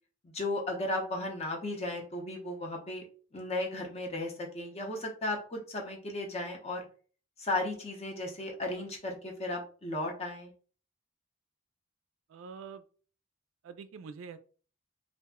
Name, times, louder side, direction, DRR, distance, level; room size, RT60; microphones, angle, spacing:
voice 1, 0.2-3.0 3.3-6.9 7.4-10.5, left 2 dB, 30° left, 1 dB, 0.6 m, -35 dB
voice 2, 12.3-12.8 13.6-14.4, right 5 dB, 75° right, 12 dB, 0.3 m, -45 dB
2.5 x 2.1 x 3.5 m, 0.40 s
head